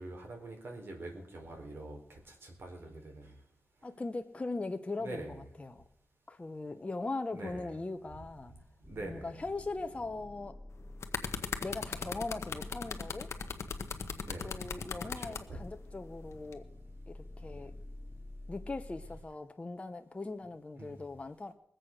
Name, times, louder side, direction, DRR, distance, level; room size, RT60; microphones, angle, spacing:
voice 1, 0.0-3.4 5.0-5.4 7.3-7.7 8.9-9.3 14.2-14.6 15.0-15.6 17.5-17.7 20.8-21.0, right 2 dB, 60° right, 2 dB, 4.1 m, -45 dB
voice 2, 3.8-5.8 6.3-8.5 9.0-10.6 11.6-13.3 14.4-16.7 17.1-17.7 18.5-21.5, left 3 dB, 25° left, 6 dB, 0.9 m, -40 dB
sound 1, 8.8-19.2, left 1 dB, ahead, 2.8 m, -49 dB
sound 2, 10.7-15.4 16.3-16.5, left 6 dB, 90° left, 1.0 m, -38 dB
21.0 x 7.8 x 6.5 m, 0.73 s
wide cardioid pair, 100°, 5 cm